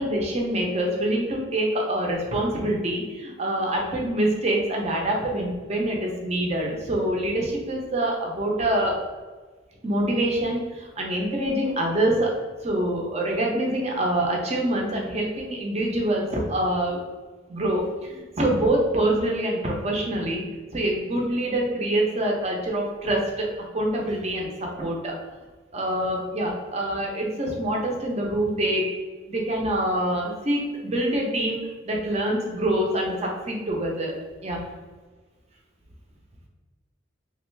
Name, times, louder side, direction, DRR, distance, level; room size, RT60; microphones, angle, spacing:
voice 1, 0.0-9.0 9.8-12.3 12.6-17.0 17.5-20.4 20.7-23.5 23.7-25.1 25.7-28.9 29.3-31.6 31.8-34.2 34.4-34.6, right 1 dB, 35° right, -1 dB, 0.6 m, -25 dB
3.1 x 2.4 x 3.2 m, 1.4 s
head